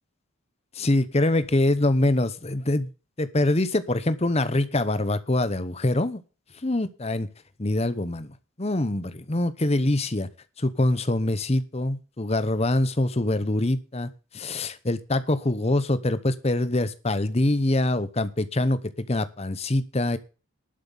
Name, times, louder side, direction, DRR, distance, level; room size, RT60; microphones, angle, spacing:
voice 1, 0.7-2.9 3.2-6.2 6.6-7.3 7.6-10.3 10.6-20.2, left 1 dB, 30° left, 14 dB, 0.9 m, -24 dB
11.5 x 7.5 x 7.0 m, 0.33 s
head